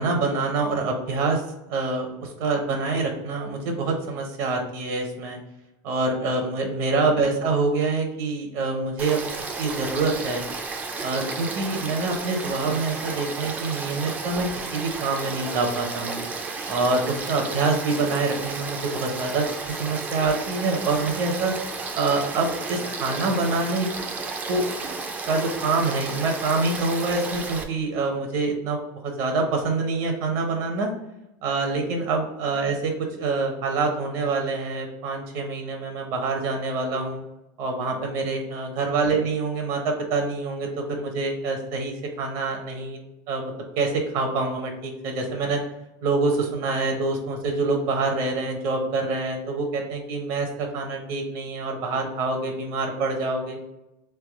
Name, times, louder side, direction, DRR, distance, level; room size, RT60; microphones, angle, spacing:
voice 1, 0.0-1.4 1.7-5.4 5.8-10.4 11.0-16.2 16.7-21.5 22.0-23.9 24.5-24.7 25.3-28.8 29.0-30.9 31.4-37.2 37.6-43.0 43.3-45.6 46.0-53.6, right 3 dB, 50° right, 3 dB, 0.7 m, -26 dB
Frog / Stream, 9.0-27.6, right 4 dB, 15° right, 0.4 m, -33 dB
3.4 x 3.4 x 3.5 m, 0.93 s
cardioid pair, 175°, 11 cm